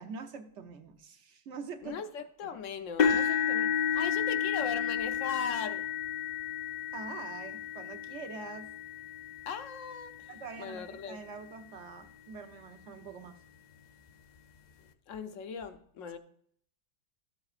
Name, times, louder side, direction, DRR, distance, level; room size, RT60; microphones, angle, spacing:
voice 1, 0.0-2.0 2.4-2.5 6.9-8.7 10.3-13.4, right 5 dB, 70° right, 1.0 m, -44 dB
voice 2, 1.8-5.9 9.5-10.3 10.6-11.2 15.1-16.2, left 6 dB, 80° left, 1.0 m, -38 dB
sound 1, 3.0-11.0 11.7-11.9 12.3-12.4 13.8-13.9, left 7 dB, 60° left, 0.4 m, -32 dB
12.5 x 7.7 x 2.4 m
omnidirectional pair, 1.3 m